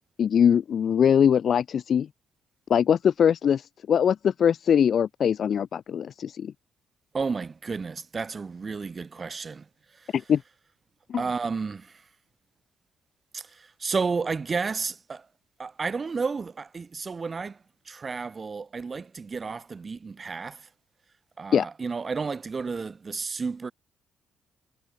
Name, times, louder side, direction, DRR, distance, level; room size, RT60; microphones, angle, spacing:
voice 1, 0.2-2.1 2.7-6.5 10.1-10.4 11.1-11.2 21.5-21.7, left 8 dB, 55° left, 2.7 m, -22 dB
voice 2, 7.1-9.6 9.9-10.1 11.1-12.0 13.3-15.3 15.6-17.6 17.9-20.7 21.4-23.7, right 4 dB, 35° right, 2.2 m, -32 dB
cardioid pair, 90°, 0 cm